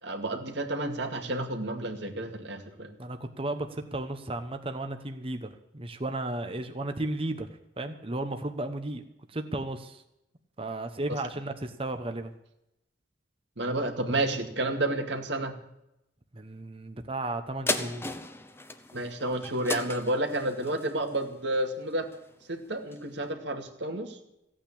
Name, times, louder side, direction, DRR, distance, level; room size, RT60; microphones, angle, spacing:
voice 1, 0.0-2.9 13.6-15.6 18.9-22.1 22.5-24.2, right 1 dB, 75° right, 5 dB, 2.3 m, -30 dB
voice 2, 3.0-7.5 7.8-9.0 9.3-10.0 10.6-12.3 16.3-18.0, right 2 dB, 30° right, 7 dB, 1.1 m, -34 dB
sound 1, 17.7-22.4 22.9-23.0, left 2 dB, 15° left, 0.9 m, -36 dB
16.0 x 8.9 x 8.6 m, 0.84 s
head